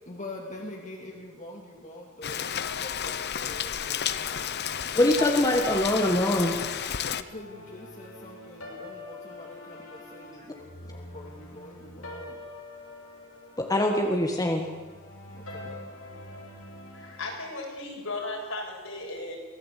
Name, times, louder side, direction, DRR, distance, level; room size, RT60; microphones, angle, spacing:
voice 1, 0.1-5.2 7.1-12.5 15.3-15.8, left 1 dB, 35° left, 0 dB, 2.4 m, -45 dB
Rain, 2.2-7.2, left 8 dB, 50° left, 0.9 m, -32 dB
voice 2, 4.9-6.6 13.6-14.7, left 1 dB, 15° left, 2 dB, 1.8 m, -23 dB
sound 1, 5.2-17.4, left 2 dB, 90° left, 5.5 m, -44 dB
voice 3, 16.9-19.4, left 2 dB, 70° left, -1 dB, 7.0 m, -36 dB
23.5 x 17.0 x 8.5 m, 1.4 s
head